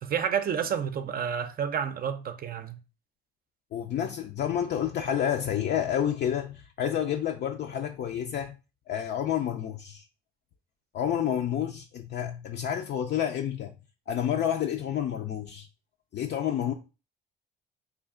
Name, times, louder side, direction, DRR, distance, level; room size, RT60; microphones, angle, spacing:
voice 1, 0.0-2.8, right 7 dB, 50° right, 0.5 m, -30 dB
voice 2, 3.7-8.6 8.9-10.0 10.9-13.7 14.1-15.7 16.1-16.7, left 9 dB, 60° left, 0.4 m, -29 dB
3.3 x 2.5 x 3.6 m
cardioid pair, 90°, 20 cm